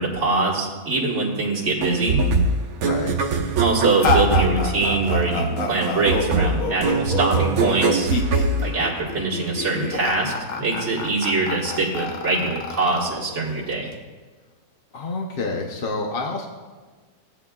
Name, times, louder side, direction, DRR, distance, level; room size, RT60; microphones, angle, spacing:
voice 1, 0.0-2.2 3.6-8.1 8.6-13.9, right 3 dB, 50° right, -6 dB, 1.9 m, -23 dB
sound 1, 1.8-9.4, right 4 dB, 70° right, 1.2 m, -23 dB
voice 2, 2.8-3.1 14.9-16.5, left 3 dB, 45° left, 1 dB, 0.9 m, -28 dB
sound 2, 4.0-13.9, left 4 dB, 65° left, 1.4 m, -27 dB
16.5 x 9.0 x 2.3 m, 1.4 s
omnidirectional pair, 1.7 m